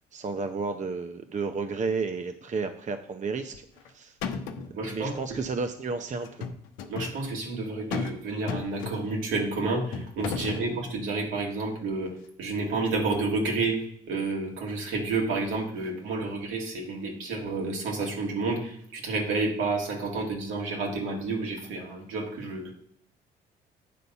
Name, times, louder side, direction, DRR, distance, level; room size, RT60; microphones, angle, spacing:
voice 1, 0.1-3.6 3.9-4.2 4.7-6.5 10.5-10.6, right 4 dB, 35° right, 7 dB, 0.7 m, -32 dB
sound 1, 3.5-3.9 4.2-4.7 6.2-7.2 7.9-8.2 8.5-9.2 9.9-10.7, left 6 dB, 85° left, 0.8 m, -34 dB
voice 2, 4.8-5.4 6.9-12.1 12.4-22.7, right 3 dB, 75° right, -1 dB, 2.2 m, -30 dB
8.4 x 4.0 x 5.6 m, 0.68 s
hypercardioid pair, 55°, 20 cm